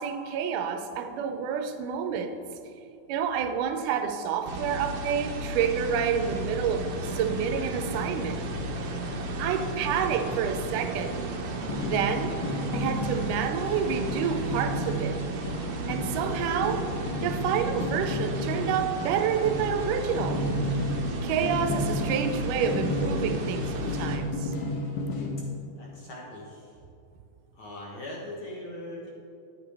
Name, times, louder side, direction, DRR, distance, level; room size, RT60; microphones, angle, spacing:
voice 1, 0.0-2.4 3.1-8.5 8.8-11.2 11.8-12.4 12.7-15.2 15.9-16.9 17.2-20.4 21.2-24.5, right 7 dB, 85° right, 7 dB, 2.2 m, -29 dB
sound 1, 4.4-24.2, right 1 dB, 70° right, 1.5 m, -34 dB
sound 2, 11.7-25.3, left 1 dB, 80° left, 2.5 m, -32 dB
voice 2, 25.7-26.8 27.5-29.1, left 1 dB, 65° left, -3 dB, 1.3 m, -40 dB
10.5 x 8.5 x 3.4 m, 2.6 s
omnidirectional pair, 3.6 m